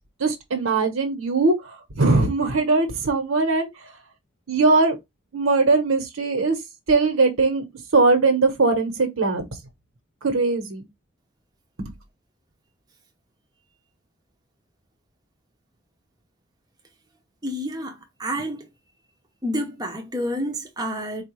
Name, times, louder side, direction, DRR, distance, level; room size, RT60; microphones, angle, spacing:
voice 1, 0.2-3.9 4.5-5.0 5.3-6.6 6.9-7.6 7.9-9.5 10.2-10.9 11.8-11.9, right 3 dB, 85° right, 1.1 m, -20 dB
voice 2, 17.4-17.9 18.2-18.7 19.4-21.2, equal, 20° right, 0.6 m, -28 dB
4.4 x 2.4 x 3.0 m
head